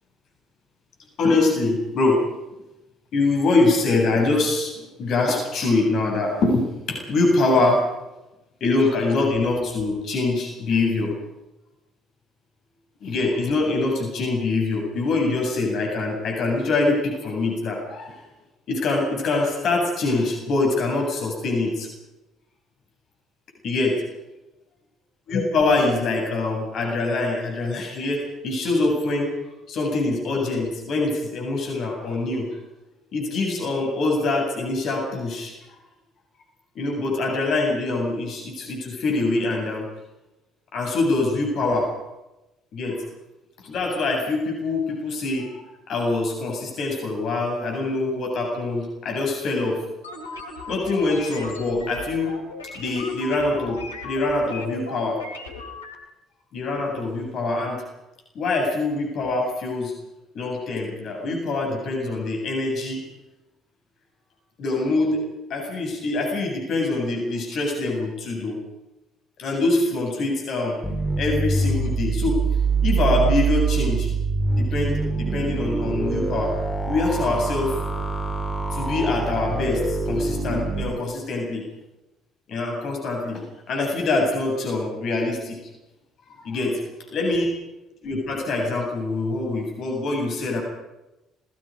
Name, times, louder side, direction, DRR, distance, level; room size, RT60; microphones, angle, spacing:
voice 1, 1.2-2.2 3.1-4.7 5.0-7.8 8.6-11.1 13.0-18.2 18.7-21.9 23.6-24.0 25.3-29.3 29.7-32.5 33.1-35.5 36.7-39.9 40.7-41.9 42.7-43.0 43.6-45.6 45.9-49.8 50.7-52.3 52.7-55.2 56.5-57.8 58.3-59.9 60.3-63.0 64.6-65.2 65.5-68.6 69.4-70.8 71.2-72.4 72.8-74.1 74.5-76.5 76.9-77.8 78.7-81.6 82.5-85.6 86.3-86.8 87.1-87.5 88.0-90.6, left 2 dB, 55° left, 1 dB, 7.9 m, -24 dB
sound 1, 50.0-55.9, left 3 dB, 90° left, 3.3 m, -37 dB
sound 2, 70.8-80.8, right 4 dB, ahead, 7.1 m, -24 dB
30.0 x 21.0 x 5.4 m, 0.97 s
hypercardioid pair, 50°, 0 cm